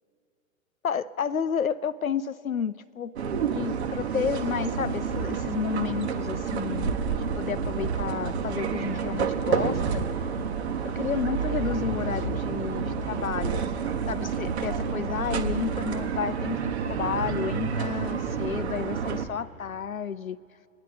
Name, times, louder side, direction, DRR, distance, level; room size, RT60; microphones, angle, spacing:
voice 1, 0.8-3.1 3.5-10.0 10.8-13.7 14.1-20.4, left 7 dB, 90° left, 16 dB, 0.5 m, -31 dB
sound 1, 3.2-19.3, right 6 dB, 50° right, 1.2 m, -29 dB
27.5 x 9.8 x 4.0 m, 2.5 s
figure-of-eight pair, 105°, 40 cm